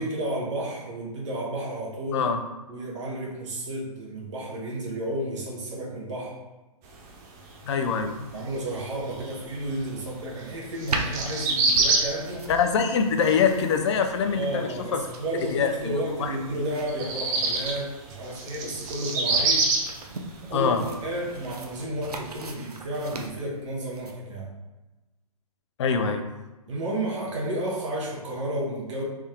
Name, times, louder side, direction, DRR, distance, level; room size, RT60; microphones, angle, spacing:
voice 1, 0.0-2.3 2.7-6.4 8.3-12.5 14.3-19.7 20.5-24.5 26.7-29.0, right 1 dB, 50° right, -3 dB, 1.0 m, -32 dB
sound 1, 6.8-21.8, right 3 dB, 25° right, 0.5 m, -29 dB
voice 2, 7.6-8.3 12.5-15.0 15.5-16.4 20.5-20.8 25.8-26.3, left 6 dB, 50° left, 6 dB, 0.5 m, -24 dB
sound 2, 10.9-24.1, right 3 dB, 85° right, 0.6 m, -39 dB
3.6 x 2.7 x 3.4 m, 1.1 s
figure-of-eight pair, 130°, 19 cm